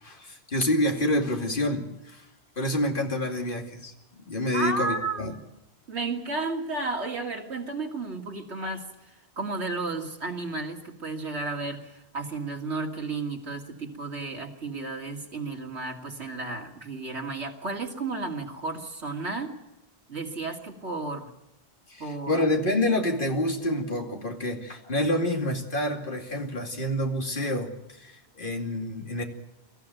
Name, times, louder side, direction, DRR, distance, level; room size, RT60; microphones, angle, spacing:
voice 1, 0.0-2.2 2.6-5.3 21.9-29.2, left 1 dB, 50° left, 3 dB, 2.7 m, -28 dB
voice 2, 4.5-5.3 5.9-8.9 9.4-19.5 20.1-21.3 22.0-22.4, right 3 dB, 90° right, 1 dB, 2.8 m, -33 dB
24.0 x 14.5 x 9.2 m, 0.93 s
omnidirectional pair, 1.1 m